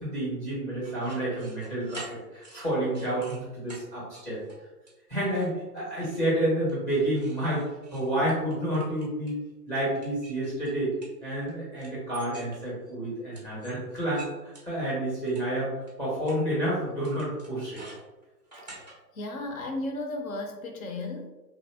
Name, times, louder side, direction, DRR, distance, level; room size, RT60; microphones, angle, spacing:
voice 1, 0.0-2.0 2.3-4.4 5.1-7.6 7.9-9.4 9.7-10.9 11.2-15.7 16.0-17.8, right 1 dB, 15° left, -7 dB, 0.7 m, -29 dB
sound 1, 0.8-3.4 3.7-3.8 4.1-4.6 4.9-5.5 5.8-6.3 6.7-9.4 9.9-11.5 11.8-12.9 13.3-15.4 15.9-16.0 16.2-16.4 17.0-18.9, right 2 dB, 30° right, 0.3 m, -47 dB
voice 2, 19.1-21.3, left 2 dB, 55° left, 3 dB, 0.7 m, -34 dB
2.6 x 2.0 x 3.3 m, 1.1 s
hypercardioid pair, 135°, 49 cm